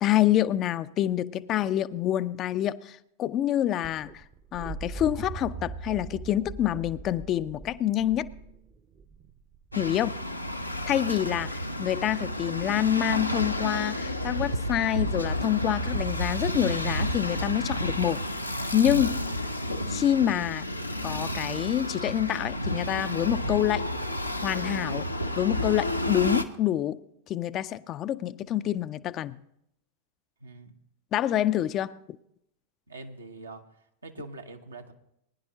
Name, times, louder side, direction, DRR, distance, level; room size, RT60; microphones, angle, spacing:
voice 1, 0.0-4.2 4.5-8.3 9.8-10.1 10.9-18.3 18.7-19.2 19.9-20.7 21.0-23.9 24.4-25.1 25.4-27.0 27.3-29.4 31.1-31.9, left 12 dB, 35° left, 0.4 m, -27 dB
sound 1, 3.8-9.8 11.4-11.9 14.5-14.6, right 5 dB, 30° right, 0.7 m, -41 dB
sound 2, 9.7-26.4, equal, 90° left, 0.6 m, -31 dB
voice 2, 9.9-10.4 11.3-11.5 30.4-30.7 32.9-33.7 34.0-34.9, right 2 dB, 75° right, 1.0 m, -44 dB
20.5 x 10.5 x 2.8 m
figure-of-eight pair, 90°, 0 cm